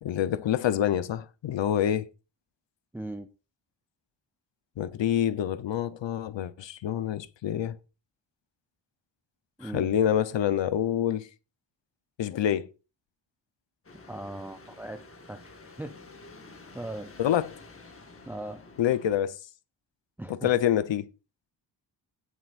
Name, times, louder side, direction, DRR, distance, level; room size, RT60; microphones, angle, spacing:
voice 1, 0.0-2.0 4.8-7.8 9.6-11.3 12.2-12.7 17.2-17.5 18.8-19.4 20.3-21.1, left 10 dB, 75° left, 1.0 m, -27 dB
voice 2, 2.9-3.3 9.6-9.9 14.1-15.9 16.7-17.1 18.2-18.6 20.2-20.5, right 1 dB, 5° right, 0.6 m, -39 dB
sound 1, 13.8-19.2, left 3 dB, 30° left, 1.8 m, -50 dB
17.0 x 7.8 x 2.6 m
wide cardioid pair, 165°, 45 cm